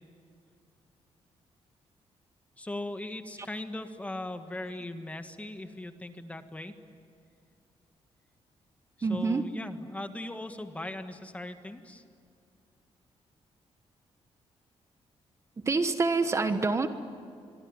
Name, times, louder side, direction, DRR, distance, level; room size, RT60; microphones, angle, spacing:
voice 1, 2.6-6.7 9.0-12.0, left 1 dB, 15° left, 7 dB, 1.6 m, -39 dB
voice 2, 9.0-9.4 15.7-16.9, right 3 dB, 25° right, 9 dB, 1.3 m, -26 dB
26.0 x 23.5 x 9.6 m, 2.4 s
cardioid pair, 135°, 11 cm